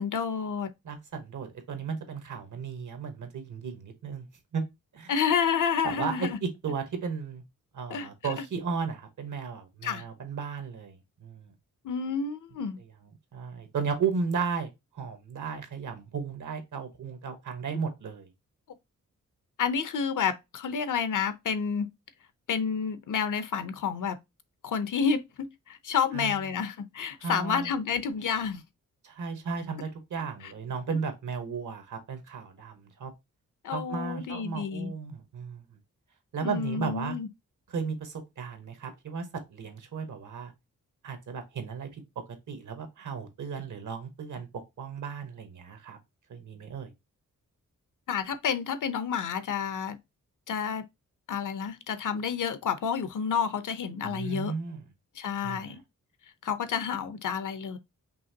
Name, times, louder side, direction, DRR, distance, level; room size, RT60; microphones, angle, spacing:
voice 1, 0.0-0.7 5.1-6.4 7.9-8.4 9.8-10.0 11.8-12.8 19.6-21.9 22.5-24.2 24.6-28.6 30.4-30.5 30.9-31.0 33.6-34.9 36.4-37.3 48.1-50.0 50.5-50.8 51.3-54.5 55.2-55.8 56.4-57.8, left 6 dB, 75° left, 0.7 m, -30 dB
voice 2, 0.8-4.3 4.5-4.6 4.9-5.1 5.8-7.4 7.7-11.5 13.3-18.3 26.1-26.4 27.2-27.7 29.0-33.1 33.7-35.6 36.3-37.1 37.7-39.2 39.5-40.5 41.0-41.9 42.5-44.5 44.8-46.0 46.3-46.9 54.0-54.8 55.4-55.8, right 5 dB, 70° right, 1.3 m, -35 dB
5.5 x 2.9 x 2.8 m
wide cardioid pair, 160°, 31 cm